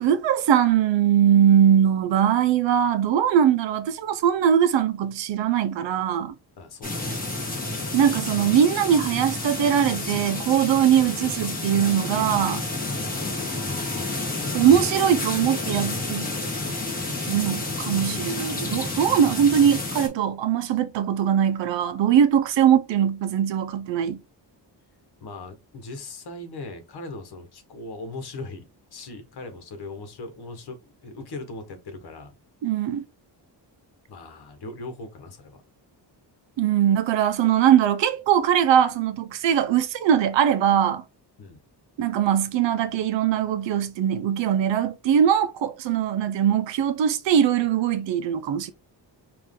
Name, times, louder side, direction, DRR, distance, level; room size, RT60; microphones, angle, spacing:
voice 1, 0.0-6.3 7.9-12.6 14.5-16.3 17.3-24.2 32.6-33.0 36.6-41.0 42.0-48.7, right 9 dB, 80° right, 0.7 m, -21 dB
voice 2, 6.6-7.2 25.2-28.6 28.9-32.3 34.1-35.6 41.4-41.6, left 2 dB, 60° left, 1.4 m, -39 dB
sound 1, 6.8-20.1, left 2 dB, 20° left, 1.6 m, -30 dB
4.5 x 2.6 x 3.7 m
wide cardioid pair, 140°, 43 cm